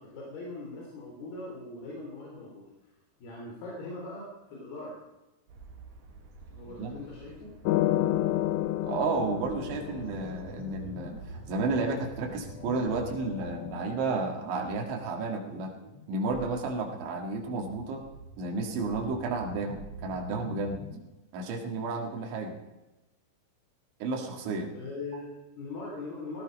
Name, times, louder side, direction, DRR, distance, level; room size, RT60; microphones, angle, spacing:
voice 1, 0.0-2.7 3.2-5.0 6.5-7.5 24.7-26.4, left 2 dB, 60° left, -2 dB, 4.9 m, -41 dB
sound 1, 5.5-13.6, right 3 dB, 60° right, 3.8 m, -52 dB
sound 2, 7.7-10.7 12.5-14.2, left 14 dB, 80° left, 2.9 m, -31 dB
voice 2, 8.8-15.7 16.1-18.1 18.4-20.8 21.3-22.6 24.0-24.7, right 3 dB, 85° right, 2 dB, 4.4 m, -32 dB
sound 3, 9.4-21.0, right 1 dB, 40° right, 3.0 m, -46 dB
17.5 x 15.0 x 5.3 m, 1.0 s
omnidirectional pair, 5.2 m